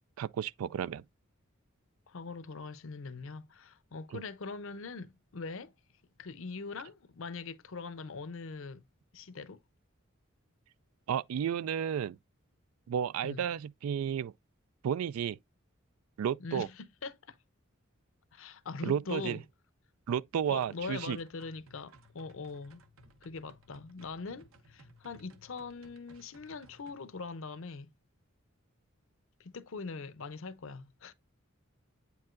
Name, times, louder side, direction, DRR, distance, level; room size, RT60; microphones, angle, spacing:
voice 1, 0.2-1.0 4.1-4.2 11.1-12.2 12.9-14.3 14.8-15.4 16.2-16.7 18.8-19.4 20.1-21.2, right 8 dB, 90° right, 0.3 m, -32 dB
voice 2, 2.1-5.7 6.2-8.8 9.1-9.6 13.2-13.4 16.4-17.4 18.3-19.4 20.5-22.8 23.2-27.9 29.4-31.1, left 4 dB, 65° left, 0.6 m, -42 dB
sound 1, 20.4-27.0, right 1 dB, 70° right, 0.9 m, -60 dB
8.4 x 4.6 x 2.5 m
head